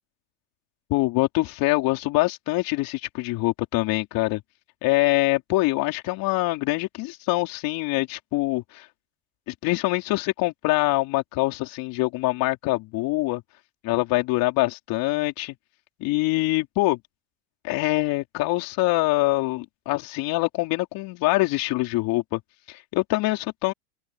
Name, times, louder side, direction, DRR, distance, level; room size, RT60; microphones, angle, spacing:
voice 1, 0.9-4.4 4.8-8.9 9.5-13.4 13.8-15.6 16.0-17.0 17.6-22.4 22.7-23.7, left 20 dB, 50° left, 4.2 m, -24 dB
open air
supercardioid pair, 120°, 43 cm